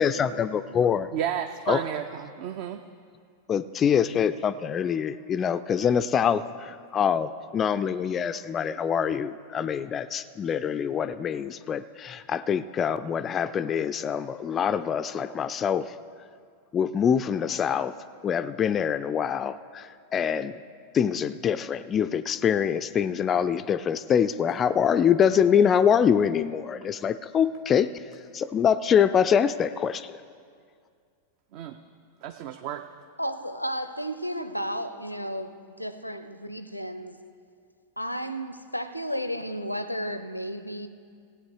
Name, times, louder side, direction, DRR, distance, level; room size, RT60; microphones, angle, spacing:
voice 1, 0.0-1.1 1.7-1.8 3.5-15.9 16.7-17.9 18.2-20.5 20.9-27.9 28.3-30.1, left 8 dB, 25° left, 13 dB, 0.3 m, -25 dB
voice 2, 1.1-2.8 31.5-31.8 32.2-32.8, right 10 dB, 45° right, 8 dB, 0.4 m, -32 dB
voice 3, 33.2-37.2 38.0-40.9, equal, 90° left, 11 dB, 0.6 m, -33 dB
17.0 x 8.5 x 4.7 m, 2.2 s
figure-of-eight pair, 90°, 0 cm